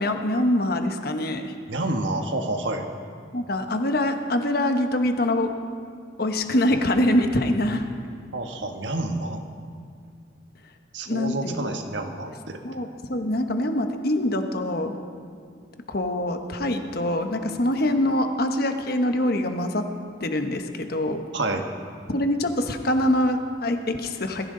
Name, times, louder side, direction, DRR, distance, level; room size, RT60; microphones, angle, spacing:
voice 1, 0.0-1.5 3.3-5.5 6.2-7.8 11.1-11.7 12.6-15.0 15.9-19.8 20.2-21.3 22.1-24.5, left 1 dB, 55° left, 6 dB, 1.1 m, -24 dB
voice 2, 1.7-2.9 8.3-9.4 10.9-12.6 21.3-21.6, right 2 dB, 70° right, 5 dB, 1.3 m, -28 dB
21.0 x 14.5 x 3.9 m, 2.2 s
head